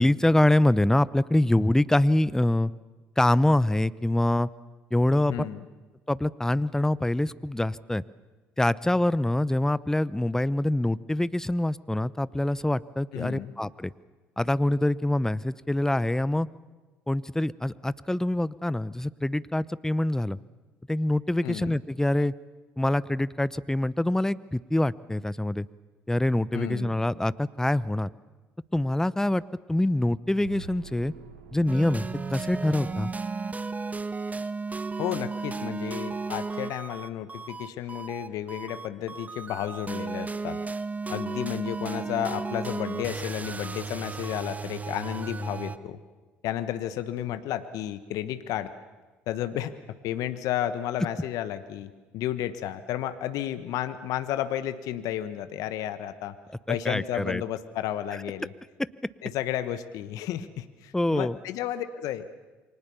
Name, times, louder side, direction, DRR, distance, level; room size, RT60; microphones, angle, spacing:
voice 1, 0.0-2.7 3.2-4.5 4.9-5.3 6.1-8.0 8.6-13.9 14.4-16.5 17.1-20.4 20.9-22.3 22.8-25.7 26.1-28.1 28.7-29.4 29.7-31.1 31.5-32.1 32.3-33.1 56.7-57.4 60.9-61.4, left 1 dB, 10° left, 18 dB, 0.9 m, -25 dB
voice 2, 5.3-5.7 13.1-13.5 21.4-21.8 26.5-26.9 35.0-40.6 41.1-46.0 46.4-48.7 49.3-56.3 56.7-58.5 59.2-62.3, left 11 dB, 70° left, 12 dB, 1.3 m, -32 dB
sound 1, 30.4-33.9, right 5 dB, 85° right, 2.3 m, -47 dB
sound 2, 31.7-45.8, right 4 dB, 25° right, 1.3 m, -34 dB
28.5 x 24.0 x 7.0 m, 1.3 s
hypercardioid pair, 55°, 6 cm